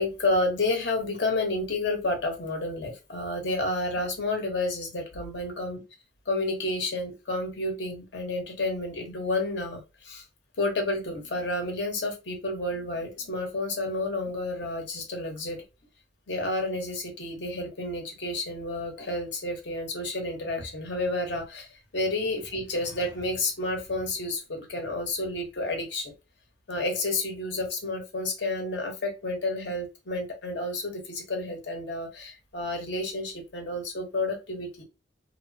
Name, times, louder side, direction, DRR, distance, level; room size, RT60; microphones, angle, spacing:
voice 1, 0.0-5.8 6.3-10.2 10.6-15.6 16.3-26.1 26.7-34.8, left 2 dB, 75° left, 3 dB, 0.9 m, -30 dB
3.0 x 2.0 x 2.6 m, 0.27 s
head